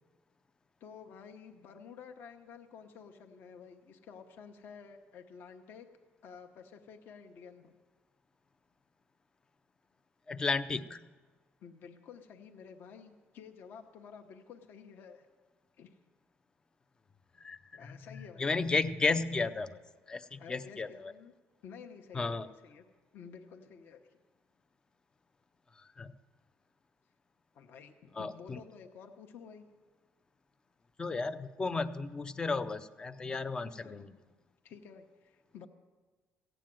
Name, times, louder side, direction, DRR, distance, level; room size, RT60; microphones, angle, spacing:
voice 1, 0.8-5.9 6.2-7.7 11.6-15.2 15.8-16.0 17.8-18.8 20.4-21.3 21.6-22.9 23.1-24.0 27.5-29.6 33.6-34.0 34.6-35.7, left 6 dB, 50° left, 5 dB, 0.9 m, -51 dB
voice 2, 10.3-11.0 17.4-17.6 17.9-19.8 20.1-21.1 22.1-22.5 25.8-26.1 28.2-28.6 31.0-34.1, left 4 dB, 15° left, 11 dB, 0.5 m, -33 dB
16.0 x 9.0 x 7.6 m, 1.3 s
cardioid pair, 165°, 5 cm